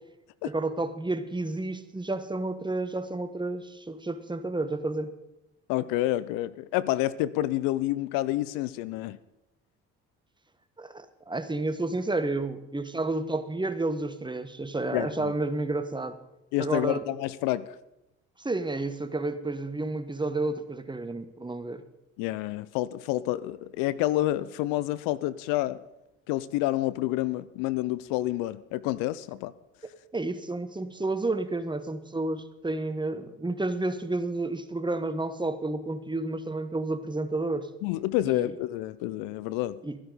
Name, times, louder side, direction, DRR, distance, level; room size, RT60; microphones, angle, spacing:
voice 1, 0.4-5.1 10.8-16.2 16.6-17.0 18.4-21.8 30.1-37.7 38.2-38.5 39.8-40.0, right 2 dB, 15° right, 10 dB, 1.3 m, -31 dB
voice 2, 5.7-9.2 14.9-15.3 16.5-17.7 22.2-25.8 26.3-29.5 37.8-39.8, left 15 dB, 80° left, 17 dB, 0.6 m, -28 dB
13.0 x 11.5 x 5.0 m, 0.91 s
hypercardioid pair, 60°, 33 cm